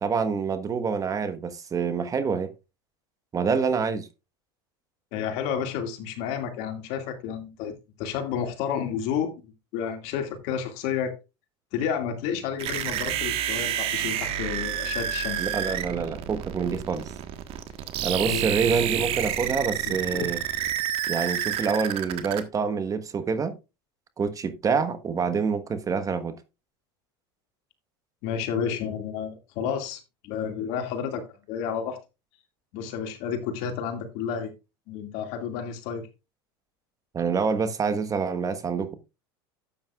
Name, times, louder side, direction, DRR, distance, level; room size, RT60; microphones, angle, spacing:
voice 1, 0.0-2.5 3.3-4.1 15.4-17.1 18.0-20.4 21.1-23.6 24.2-26.4 37.1-38.9, right 5 dB, 30° right, 1.3 m, -26 dB
voice 2, 5.1-11.1 11.7-15.5 18.3-18.4 19.9-20.3 28.2-32.0 32.7-34.5 34.9-36.1, left 7 dB, 65° left, 2.3 m, -31 dB
sound 1, 12.6-22.4, right 10 dB, 50° right, 1.5 m, -29 dB
12.5 x 8.9 x 2.4 m
hypercardioid pair, 100°, 12 cm